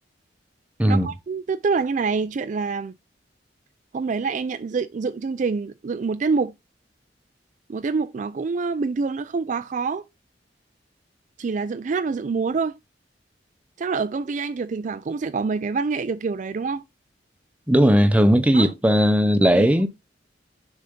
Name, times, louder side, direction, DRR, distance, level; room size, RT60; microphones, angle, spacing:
voice 1, 0.9-2.9 3.9-6.5 7.7-10.0 11.4-12.7 13.8-16.8 18.5-18.7 19.5-19.7, right 4 dB, 40° right, 0.3 m, -26 dB
voice 2, 17.7-19.9, equal, 10° right, 0.7 m, -17 dB
6.6 x 4.1 x 3.7 m
head